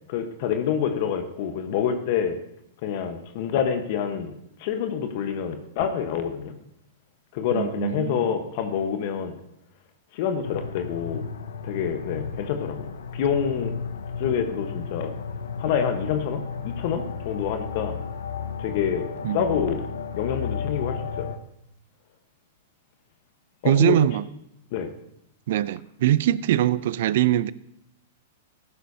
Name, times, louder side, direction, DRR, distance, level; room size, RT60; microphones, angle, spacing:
voice 1, 0.1-2.4 2.8-4.3 4.6-6.5 7.3-9.3 10.1-11.2 11.6-13.7 14.2-15.1 15.6-18.0 18.6-19.1 19.3-19.8 20.1-21.3 23.6-24.0 24.7-24.9, left 8 dB, 55° left, 7 dB, 1.2 m, -27 dB
voice 2, 7.5-8.4 19.2-19.6 23.6-24.3 25.5-27.5, right 13 dB, 65° right, 19 dB, 0.4 m, -22 dB
sound 1, 10.4-21.4, left 6 dB, 85° left, 0.9 m, -33 dB
14.5 x 11.5 x 2.8 m, 0.77 s
hypercardioid pair, 115°, 0 cm